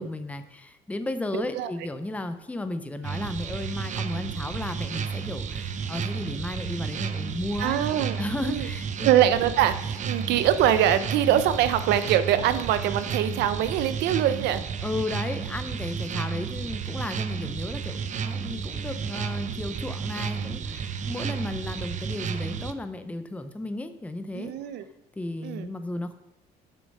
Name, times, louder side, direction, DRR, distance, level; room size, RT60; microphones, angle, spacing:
voice 1, 0.0-7.8 8.2-9.1 14.8-24.5 25.1-26.1, left 2 dB, 10° left, 9 dB, 0.7 m, -34 dB
voice 2, 1.3-1.7 7.6-8.2 8.4-8.7 9.0-14.6 21.2-21.4 24.3-24.8 25.4-25.7, right 11 dB, 85° right, 13 dB, 0.7 m, -23 dB
sound 1, 3.0-22.7, right 6 dB, 45° right, 0.7 m, -32 dB
8.5 x 6.9 x 5.4 m, 0.93 s
cardioid pair, 110°, 17 cm